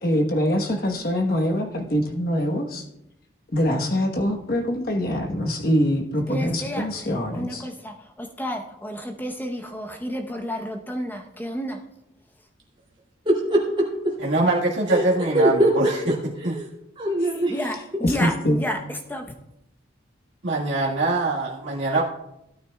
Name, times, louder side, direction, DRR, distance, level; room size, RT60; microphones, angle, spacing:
voice 1, 0.0-2.8 3.5-7.6 18.0-18.6, equal, 50° left, 1.2 m, -24 dB
voice 2, 6.3-11.8 17.5-19.3, equal, 10° left, 0.8 m, -31 dB
voice 3, 13.3-14.2 14.9-16.7 17.0-17.5 17.9-18.0, right 1 dB, 25° right, 2.4 m, -23 dB
voice 4, 14.2-16.1 16.4-16.5 18.2-18.4 20.4-22.0, right 2 dB, 80° right, 1.7 m, -23 dB
17.0 x 9.3 x 2.3 m
head